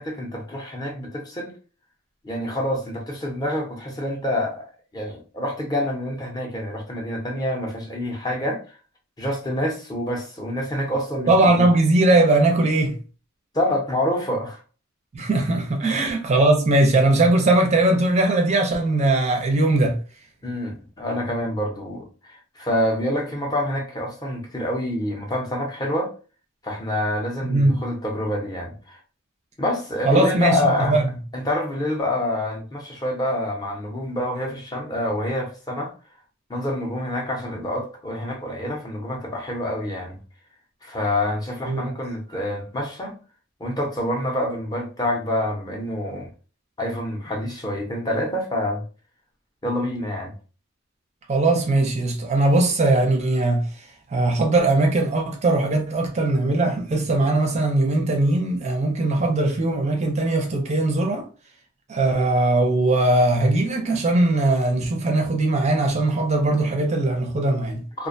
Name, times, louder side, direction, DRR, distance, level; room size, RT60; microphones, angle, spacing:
voice 1, 0.0-1.5 2.2-8.6 9.2-11.7 13.5-14.6 15.8-16.0 20.4-26.1 26.6-29.0 29.6-31.0 31.3-35.9 36.5-40.2 40.8-43.2 43.6-46.3 46.8-48.8 49.6-50.3 68.0-68.1, left 1 dB, 20° left, 0.6 m, -27 dB
voice 2, 11.3-13.0 15.1-20.0 27.5-27.8 30.1-30.6 30.9-31.1 41.6-41.9 51.3-53.7 54.1-61.2 61.9-67.8, right 2 dB, 30° right, 0.4 m, -20 dB
2.4 x 2.1 x 2.5 m
head